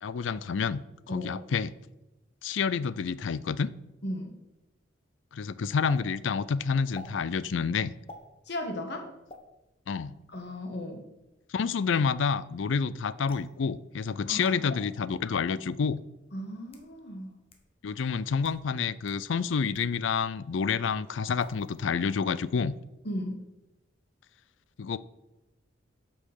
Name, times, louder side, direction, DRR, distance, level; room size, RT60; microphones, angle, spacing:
voice 1, 0.0-1.7 2.4-3.7 5.3-7.9 9.9-10.2 11.5-16.0 17.8-22.8 24.8-25.0, left 5 dB, 80° left, 17 dB, 0.4 m, -29 dB
voice 2, 4.0-4.3 8.5-9.1 10.3-11.1 14.3-14.8 16.3-17.3 23.0-23.4, left 1 dB, 60° left, 4 dB, 1.3 m, -36 dB
sound 1, 5.9-6.0 6.9-7.1 8.1-8.3 9.3-9.4 10.3-10.6 13.3-13.6 14.4-14.6 15.5-15.6 16.4-16.9 17.5-17.6 18.3-18.6 19.1-19.2 19.7-19.9 21.4-21.8 22.1-22.5, left 2 dB, 30° left, 1.2 m, -47 dB
8.3 x 5.7 x 6.5 m, 0.97 s
head